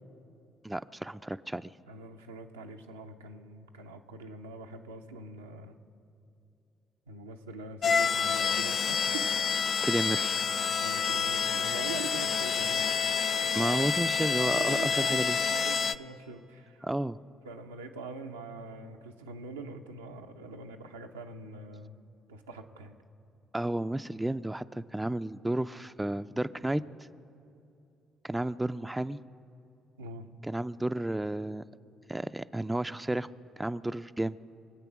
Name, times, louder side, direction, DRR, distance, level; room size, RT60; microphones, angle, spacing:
voice 1, 0.6-1.7 9.8-10.4 13.5-15.4 16.8-17.2 23.5-26.8 28.2-29.2 30.4-31.6 32.1-33.3 33.6-34.4, right 1 dB, 10° right, 12 dB, 0.4 m, -32 dB
voice 2, 1.9-5.8 7.1-9.3 10.5-13.6 14.4-16.9 17.4-22.0 22.3-23.0 30.0-30.3, right 3 dB, 90° right, 2 dB, 0.6 m, -44 dB
sound 1, 7.8-16.0, left 6 dB, 50° left, 0.4 m, -28 dB
24.0 x 8.2 x 6.0 m, 2.7 s
hypercardioid pair, 45°, 0 cm